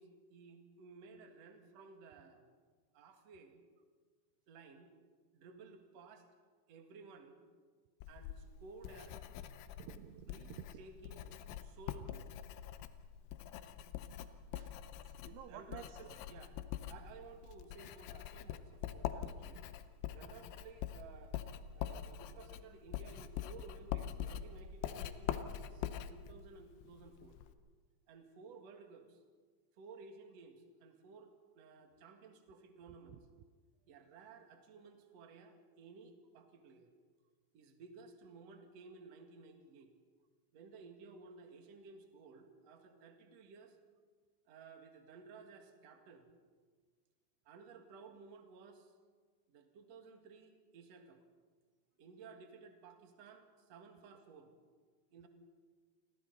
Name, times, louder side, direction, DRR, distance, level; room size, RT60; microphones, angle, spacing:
voice 1, 0.0-2.4 2.9-3.6 4.5-4.9 5.3-6.3 6.7-7.4 8.1-9.2 10.3-10.5 10.8-11.2 11.6-12.3 15.5-16.6 16.9-19.6 20.1-21.4 21.7-27.4 28.1-29.2 29.8-33.2 33.9-36.9 37.5-39.9 40.5-43.8 44.5-46.3 47.4-48.9 49.5-51.2 52.0-54.5 55.1-55.3, right 4 dB, 50° right, 4 dB, 2.2 m, -56 dB
Writing, 8.0-27.5, left 10 dB, 80° left, 3.1 m, -44 dB
voice 2, 9.8-10.9 11.2-11.4 14.0-14.8 15.0-16.2 19.2-19.5 21.9-22.0 33.1-33.2, right 10 dB, 80° right, 7 dB, 2.5 m, -54 dB
30.0 x 23.0 x 4.1 m, 1.5 s
omnidirectional pair, 5.4 m